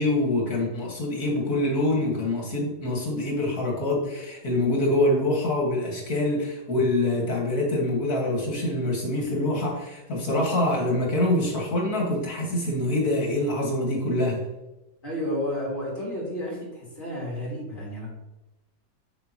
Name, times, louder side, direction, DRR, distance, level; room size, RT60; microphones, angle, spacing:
voice 1, 0.0-14.4, left 1 dB, 50° left, -2 dB, 2.5 m, -25 dB
voice 2, 15.0-18.1, left 1 dB, 25° left, -5 dB, 3.0 m, -31 dB
7.7 x 7.0 x 3.1 m, 0.97 s
omnidirectional pair, 2.0 m